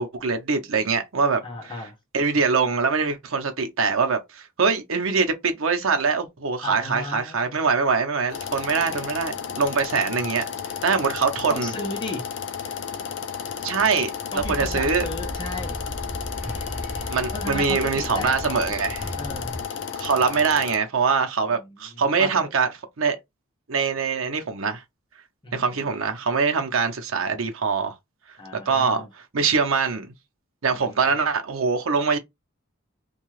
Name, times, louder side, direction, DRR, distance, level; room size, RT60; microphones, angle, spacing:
voice 1, 0.0-1.4 2.1-10.4 10.8-11.7 13.6-14.1 14.3-15.1 17.1-19.1 20.0-22.7 23.0-23.2 23.7-24.8 25.5-28.0 28.7-29.0 29.3-30.1 30.6-32.2, right 5 dB, 75° right, 0.6 m, -23 dB
voice 2, 1.4-2.0 6.6-7.6 8.7-9.0 11.5-12.2 12.6-12.8 13.5-13.6 14.3-15.8 17.3-18.6 19.1-19.6 21.5-22.5 25.4-25.8 28.4-29.1 30.7-31.2, left 2 dB, 20° left, 0.6 m, -35 dB
sound 1, 8.3-20.8, left 7 dB, 60° left, 0.4 m, -33 dB
sound 2, 14.4-19.6, left 1 dB, 10° right, 0.9 m, -35 dB
2.7 x 2.3 x 3.0 m
head